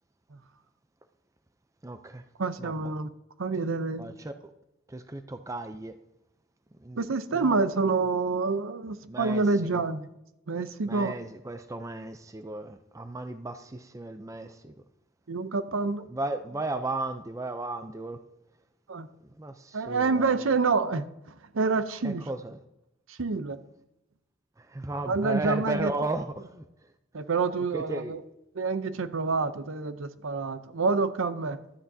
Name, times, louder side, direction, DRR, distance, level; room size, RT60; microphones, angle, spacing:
voice 1, 1.8-2.2 2.6-2.7 4.0-4.3 4.9-5.9 6.8-7.1 7.3-7.6 9.1-9.8 10.9-14.7 16.1-18.2 19.4-20.5 22.0-22.6 24.6-26.6 27.7-28.1, right 2 dB, 15° right, 9 dB, 0.5 m, -35 dB
voice 2, 2.4-3.1 3.4-4.1 7.0-10.1 10.5-11.1 15.3-16.0 18.9-19.1 19.7-21.1 21.5-22.2 23.1-23.6 25.1-25.9 27.1-28.2 28.6-31.6, right 4 dB, 75° right, 12 dB, 0.6 m, -27 dB
14.5 x 12.5 x 2.7 m, 0.90 s
head